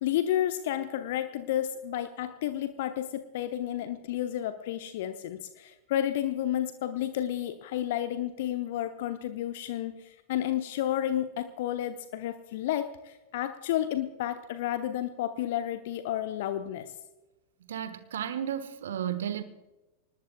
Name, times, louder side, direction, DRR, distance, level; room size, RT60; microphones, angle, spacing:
voice 1, 0.0-16.9, left 12 dB, 55° left, 0.9 m, -31 dB
voice 2, 17.6-19.4, right 9 dB, 60° right, 1.3 m, -33 dB
24.5 x 19.5 x 2.3 m
figure-of-eight pair, 90°, 0 cm